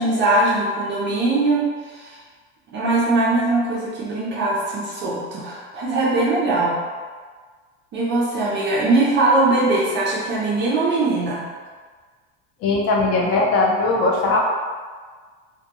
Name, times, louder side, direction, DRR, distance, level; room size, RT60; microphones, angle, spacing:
voice 1, 0.0-2.2 2.7-6.8 7.9-11.4, right 2 dB, 35° right, -6 dB, 0.5 m, -21 dB
voice 2, 12.6-14.4, left 3 dB, 45° left, -2 dB, 0.6 m, -19 dB
2.2 x 2.2 x 2.8 m, 1.5 s
supercardioid pair, 120°, 34 cm